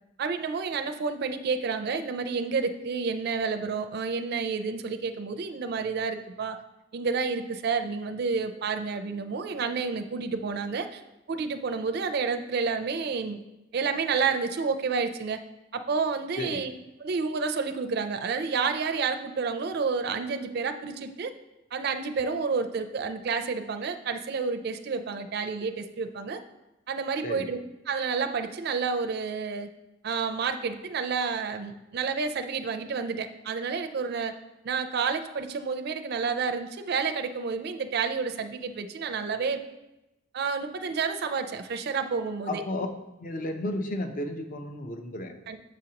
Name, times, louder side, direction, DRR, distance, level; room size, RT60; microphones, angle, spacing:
voice 1, 0.2-6.6 6.9-11.0 11.3-13.4 13.7-15.4 15.7-16.7 17.0-21.3 21.7-26.4 26.9-27.6 27.9-29.7 30.0-34.3 34.6-39.6 40.3-42.6 45.5-45.6, right 5 dB, 55° right, 7 dB, 0.4 m, -30 dB
voice 2, 42.5-42.9 43.2-45.3, left 1 dB, 45° left, 6 dB, 0.6 m, -33 dB
7.4 x 5.1 x 2.8 m, 0.96 s
head